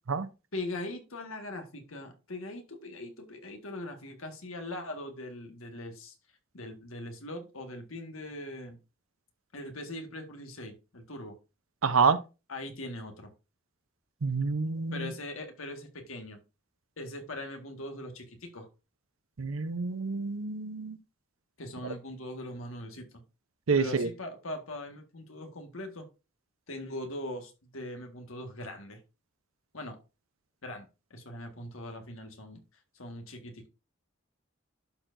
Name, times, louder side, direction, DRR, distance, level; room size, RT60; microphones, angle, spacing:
voice 1, 0.5-6.1 6.5-8.8 9.5-11.4 12.5-13.3 14.9-16.4 17.0-18.7 21.6-23.2 23.8-26.1 26.7-29.0 29.7-30.0 30.6-32.6 32.9-33.7, left 1 dB, 85° left, 1.7 m, -41 dB
voice 2, 11.8-12.2 14.2-15.1 19.4-21.0 23.7-24.1, right 5 dB, 85° right, 0.7 m, -27 dB
11.5 x 4.6 x 2.6 m
head